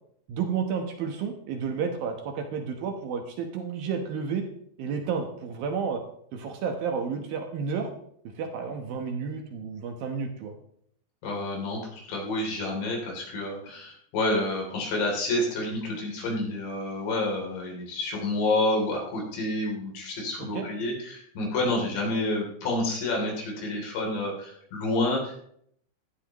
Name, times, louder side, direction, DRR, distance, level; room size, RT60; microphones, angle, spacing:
voice 1, 0.3-4.5 4.8-6.0 6.3-7.9 8.4-10.5 20.4-20.7, right 6 dB, 70° right, 4 dB, 2.2 m, -31 dB
voice 2, 11.2-25.3, left 2 dB, 65° left, -1 dB, 5.2 m, -29 dB
16.5 x 12.0 x 3.0 m, 0.67 s
omnidirectional pair, 5.6 m